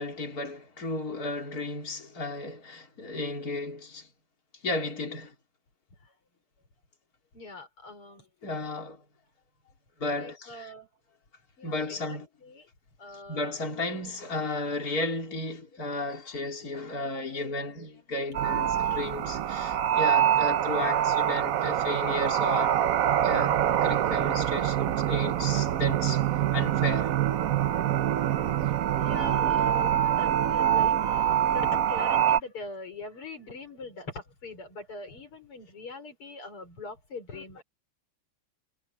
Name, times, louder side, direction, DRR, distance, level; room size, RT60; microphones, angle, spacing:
voice 1, 0.0-4.1 4.6-5.3 8.4-9.0 10.0-10.7 11.6-12.3 13.1-22.8 23.2-26.3 26.5-27.1, left 2 dB, 40° left, 4.6 m, -34 dB
voice 2, 7.3-8.3 10.2-10.9 11.6-12.7 13.0-13.5 23.1-23.3 29.0-37.6, left 3 dB, 85° left, 6.0 m, -42 dB
sound 1, 18.3-32.4, right 10 dB, 70° right, 0.8 m, -25 dB
omnidirectional pair, 2.4 m